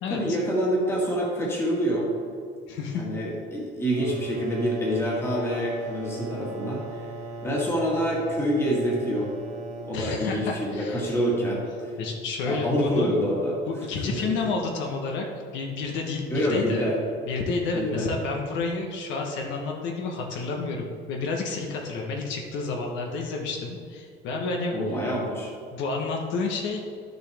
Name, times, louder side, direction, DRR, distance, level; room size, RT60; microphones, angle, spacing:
voice 1, 0.1-2.1 2.9-6.8 7.4-9.3 9.8-11.9 12.4-13.6 14.1-14.4 16.3-16.9 17.7-18.1 24.7-25.5, equal, 10° left, -4 dB, 1.8 m, -26 dB
voice 2, 2.7-3.1 9.9-11.1 12.0-13.1 13.7-15.3 15.5-16.9 17.3-24.7 25.7-26.8, left 4 dB, 70° left, 1 dB, 1.1 m, -30 dB
sound 1, 3.9-12.4, right 2 dB, 35° right, 1.2 m, -39 dB
12.0 x 6.6 x 3.5 m, 2.2 s
cardioid pair, 175°, 20 cm